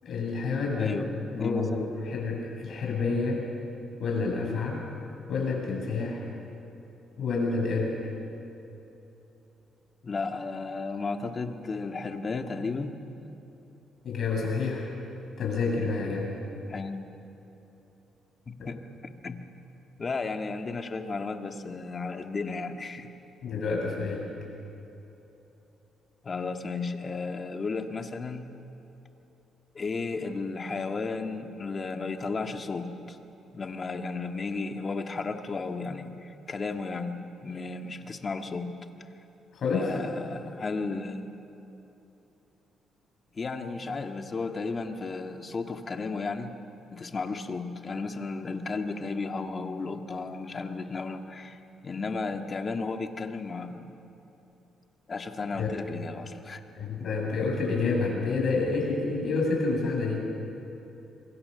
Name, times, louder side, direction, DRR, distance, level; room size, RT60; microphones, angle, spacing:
voice 1, 0.0-1.0 1.4-1.8 2.1-3.4 4.0-4.8 5.3-6.2 7.2-7.9 14.0-14.9 15.4-16.3 18.6-18.7 23.4-24.3 39.5-39.9 55.6-55.7 56.7-60.3, left 4 dB, 60° left, -1 dB, 7.8 m, -28 dB
voice 2, 0.8-1.1 1.3-2.0 2.8-3.0 10.0-12.9 16.7-17.1 18.5-19.4 20.0-23.1 26.2-28.5 29.7-33.2 33.5-37.2 37.4-38.7 39.7-41.3 43.4-46.6 46.9-51.6 51.8-53.9 55.1-56.6 57.0-57.1, left 4 dB, 35° left, 5 dB, 1.8 m, -34 dB
26.5 x 23.0 x 6.9 m, 3.0 s
cardioid pair, 90°, 0 cm